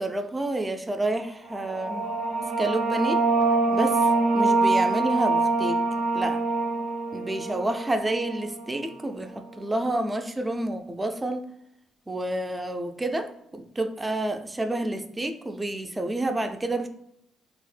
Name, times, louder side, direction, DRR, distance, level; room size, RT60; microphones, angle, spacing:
voice 1, 0.0-2.1 2.6-3.2 3.7-4.0 4.3-5.8 6.1-6.4 7.1-11.4 12.1-16.9, right 1 dB, 15° right, 7 dB, 0.3 m, -29 dB
sound 1, 1.5-8.8, right 3 dB, 70° right, 0.5 m, -25 dB
3.4 x 2.0 x 3.1 m, 0.78 s
cardioid pair, 125°, 0 cm